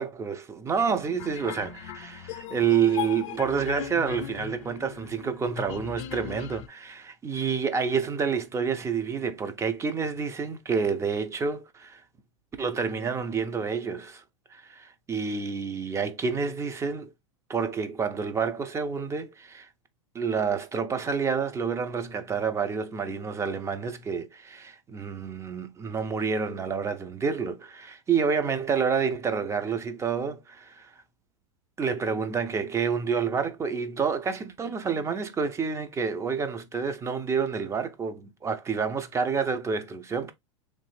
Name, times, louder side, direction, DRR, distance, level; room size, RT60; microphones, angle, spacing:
voice 1, 0.0-12.0 12.6-14.2 14.5-17.1 17.5-19.7 20.1-30.9 31.8-40.3, right 6 dB, 15° right, 0.5 m, -28 dB
sound 1, 0.7-6.7, left 12 dB, 65° left, 0.5 m, -38 dB
3.1 x 2.4 x 3.2 m
hypercardioid pair, 115°, 17 cm